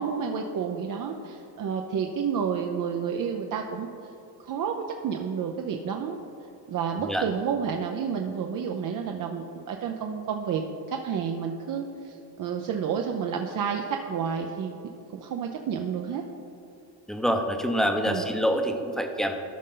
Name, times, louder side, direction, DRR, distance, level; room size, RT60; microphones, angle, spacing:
voice 1, 0.0-3.9 4.4-6.2 6.7-14.7 15.1-16.2 18.1-18.3, right 7 dB, 50° right, 3 dB, 0.6 m, -30 dB
voice 2, 17.1-19.3, equal, ahead, 4 dB, 0.7 m, -26 dB
13.5 x 5.3 x 3.8 m, 2.8 s
cardioid pair, 110°, 43 cm